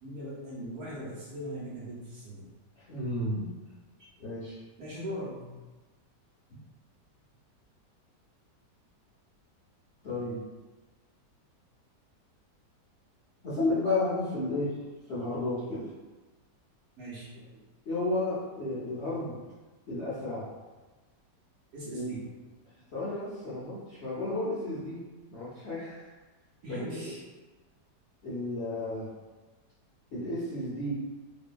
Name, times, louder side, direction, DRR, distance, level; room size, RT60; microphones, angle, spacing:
voice 1, 0.0-2.5 4.8-5.6 17.0-17.6 21.7-22.3 26.6-27.2, equal, 65° right, -7 dB, 1.0 m, -40 dB
voice 2, 2.8-3.5 4.2-4.6 10.0-10.4 13.4-14.7 15.1-15.9 17.9-19.4 19.9-20.5 21.9-22.2 22.9-25.0 25.3-26.1 26.7-27.1 28.2-29.1 30.1-30.9, left 2 dB, 60° left, -11 dB, 0.7 m, -32 dB
2.6 x 2.5 x 2.2 m, 1.2 s
omnidirectional pair, 1.9 m